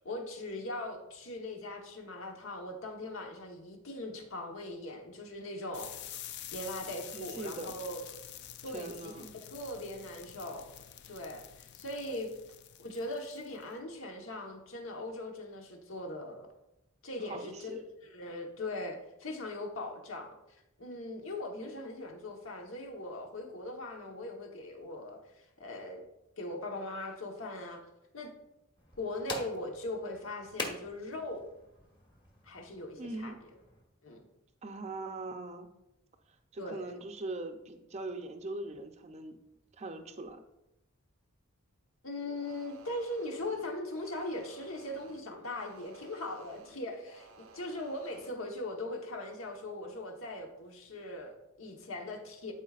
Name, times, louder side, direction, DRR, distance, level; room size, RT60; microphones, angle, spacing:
voice 1, 0.0-5.9 6.5-8.2 8.6-10.7 11.1-12.3 12.8-16.5 17.0-20.3 20.8-26.0 26.4-27.8 28.1-28.3 29.0-31.5 32.4-33.5 34.0-34.2 36.6-36.9 42.0-52.5, left 1 dB, 75° left, 2 dB, 1.2 m, -40 dB
sound 1, 5.7-13.6, left 11 dB, 55° left, 0.4 m, -48 dB
voice 2, 7.1-7.8 8.6-9.3 17.2-17.9 33.0-33.4 34.6-35.7 36.5-39.4 39.8-40.4, right 2 dB, 30° right, 6 dB, 0.5 m, -41 dB
sound 2, 28.8-33.8, left 2 dB, 25° left, 1.1 m, -44 dB
sound 3, 42.3-48.4, right 3 dB, 85° right, 0.7 m, -55 dB
11.5 x 4.6 x 2.4 m, 0.88 s
head